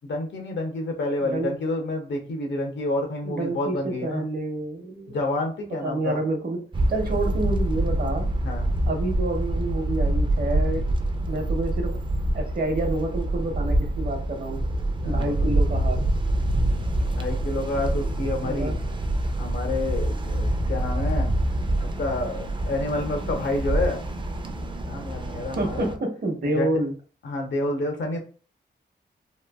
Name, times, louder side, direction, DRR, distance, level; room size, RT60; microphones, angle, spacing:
voice 1, 0.0-4.3 5.1-6.2 8.4-8.7 15.0-15.3 17.2-18.7 19.4-21.3 21.8-24.0 24.8-25.9 26.5-26.7 27.2-28.2, left 2 dB, 80° left, 2 dB, 0.8 m, -29 dB
voice 2, 1.2-1.5 3.2-5.2 5.7-8.3 8.9-10.9 11.2-12.0 12.3-14.6 15.0-16.0 18.4-18.8 25.3-26.9, right 2 dB, 55° right, 3 dB, 0.8 m, -28 dB
sound 1, 6.7-26.0, right 1 dB, 25° right, 0.4 m, -26 dB
3.1 x 2.3 x 2.3 m, 0.40 s
wide cardioid pair, 85°, 18 cm